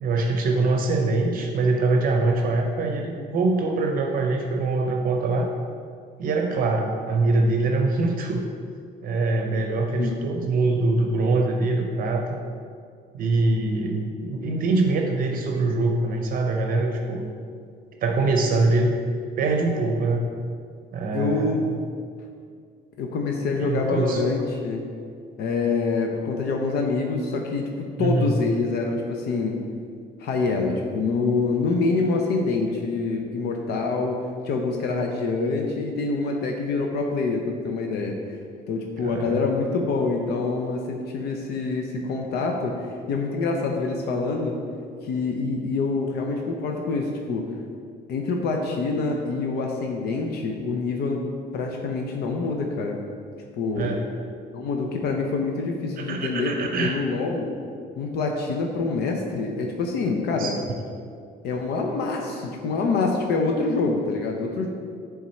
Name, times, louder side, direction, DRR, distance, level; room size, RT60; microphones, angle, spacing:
voice 1, 0.0-5.5 6.2-8.4 9.0-12.4 13.1-17.3 18.0-18.9 19.4-20.3 20.9-21.8 23.6-24.3 28.0-28.4 39.0-39.5 53.8-54.1 56.0-57.0 60.4-60.5, right 3 dB, 55° right, 2 dB, 0.6 m, -23 dB
voice 2, 21.1-21.6 23.0-24.9 25.4-29.6 30.2-38.2 38.7-44.6 45.0-47.5 48.1-51.2 51.5-53.0 53.5-53.9 54.5-56.5 56.8-57.5 58.0-60.6 61.4-64.7, left 3 dB, 70° left, 2 dB, 0.7 m, -26 dB
7.3 x 3.6 x 4.2 m, 2.2 s
cardioid pair, 110°, 17 cm